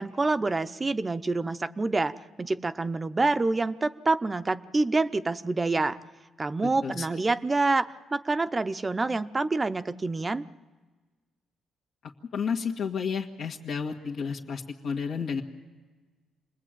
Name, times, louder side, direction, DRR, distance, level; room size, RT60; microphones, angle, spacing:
voice 1, 0.0-6.0 6.4-10.4, right 3 dB, 25° right, 12 dB, 0.8 m, -27 dB
voice 2, 6.6-7.1 12.3-15.4, left 6 dB, 70° left, -1 dB, 1.8 m, -31 dB
27.5 x 20.5 x 9.1 m, 1.3 s
cardioid pair, 90°, 0 cm